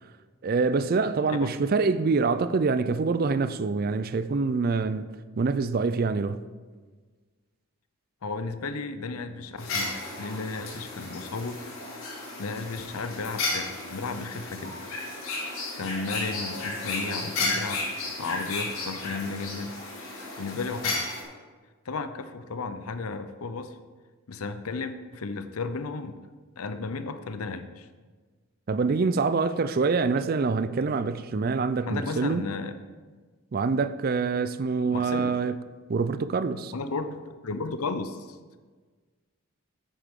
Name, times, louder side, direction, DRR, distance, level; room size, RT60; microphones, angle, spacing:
voice 1, 0.4-5.1 5.4-6.4 28.7-32.4 33.5-35.6 35.9-36.7, right 4 dB, 45° right, 0.4 m, -25 dB
voice 2, 8.2-11.6 12.4-14.8 15.7-17.8 18.2-19.7 20.4-21.2 21.9-23.8 24.3-26.1 26.6-27.9 31.9-32.7 34.9-35.3 36.7-38.4, left 4 dB, 90° left, 0.7 m, -34 dB
sound 1, 9.6-21.2, left 3 dB, 70° left, 2.8 m, -33 dB
10.5 x 8.4 x 3.7 m
head